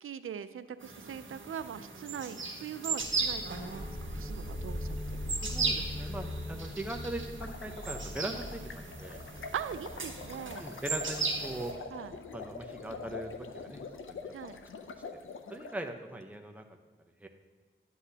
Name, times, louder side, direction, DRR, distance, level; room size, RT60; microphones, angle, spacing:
voice 1, 0.0-3.7 4.1-5.0 9.5-10.7 11.9-12.1 14.3-14.6, right 8 dB, 90° right, 13 dB, 0.4 m, -41 dB
sound 1, 0.8-11.7, right 4 dB, 70° right, 1.3 m, -37 dB
sound 2, 3.0-14.4, left 1 dB, 15° left, 2.1 m, -42 dB
voice 2, 5.4-9.2 10.6-11.7 12.3-14.2 15.5-16.6 17.2-17.3, right 1 dB, 5° right, 4 dB, 0.9 m, -40 dB
sound 3, 7.2-15.7, left 4 dB, 75° left, 0.6 m, -45 dB
11.5 x 8.0 x 2.8 m, 1.4 s
cardioid pair, 45°, 21 cm